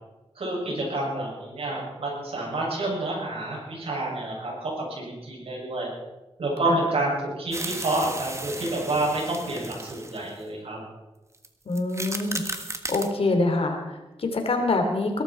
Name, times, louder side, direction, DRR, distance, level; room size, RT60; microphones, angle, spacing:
voice 1, 0.4-5.9 6.4-10.8, right 2 dB, 75° right, -4 dB, 7.1 m, -29 dB
sound 1, 7.5-10.4 11.3-11.5 11.7-13.1, right 2 dB, 30° right, 1.5 m, -35 dB
voice 2, 11.6-12.4 12.9-15.2, left 2 dB, 70° left, 4 dB, 3.1 m, -25 dB
21.5 x 12.5 x 4.5 m, 1.1 s
wide cardioid pair, 75°, 10 cm